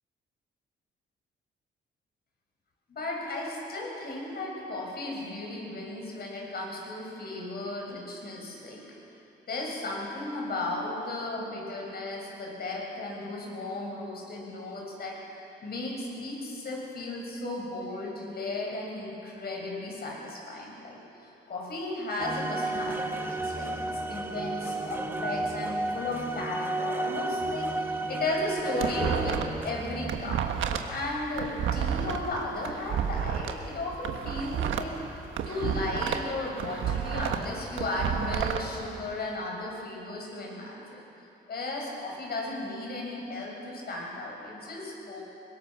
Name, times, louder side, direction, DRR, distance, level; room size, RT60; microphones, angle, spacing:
voice 1, 2.9-8.9 9.5-15.2 15.6-21.0 21.5-29.4 29.6-30.4 30.9-41.0 41.5-45.2, left 2 dB, 50° left, -1 dB, 6.6 m, -35 dB
sound 1, 22.2-30.1, right 2 dB, 10° right, 1.4 m, -33 dB
sound 2, 28.4-29.7 29.9-33.5 33.9-36.3 36.6-38.6, right 8 dB, 75° right, 1.5 m, -30 dB
23.0 x 21.0 x 6.4 m, 2.9 s
cardioid pair, 90°, 20 cm